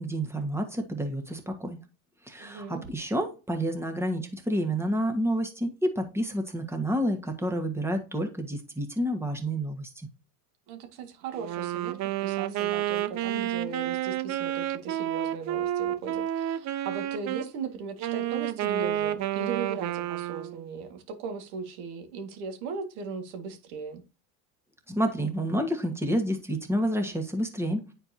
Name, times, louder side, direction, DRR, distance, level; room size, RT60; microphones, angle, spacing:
voice 1, 0.0-1.8 2.3-9.9 24.9-27.9, equal, 5° right, 5 dB, 1.5 m, -29 dB
voice 2, 2.4-2.8 10.7-24.0, right 5 dB, 75° right, 5 dB, 2.1 m, -38 dB
Wind instrument woodwind instrument, 11.3-17.5 18.0-20.6, right 12 dB, 40° right, 0.7 m, -30 dB
9.7 x 4.6 x 2.8 m, 0.32 s
supercardioid pair, 110°, 44 cm